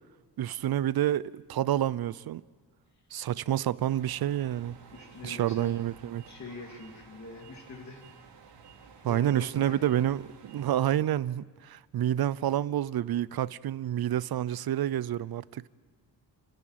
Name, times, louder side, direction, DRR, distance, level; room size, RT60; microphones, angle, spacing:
voice 1, 0.4-2.4 3.1-4.8 5.2-6.2 9.0-10.2 10.5-15.6, right 11 dB, 60° right, 0.6 m, -28 dB
sound 1, 3.9-11.0, right 6 dB, 75° right, 2.7 m, -53 dB
voice 2, 4.9-5.8 6.2-8.0 9.0-10.1, left 3 dB, 40° left, 2.7 m, -45 dB
29.5 x 10.0 x 9.3 m
cardioid pair, 95°, 43 cm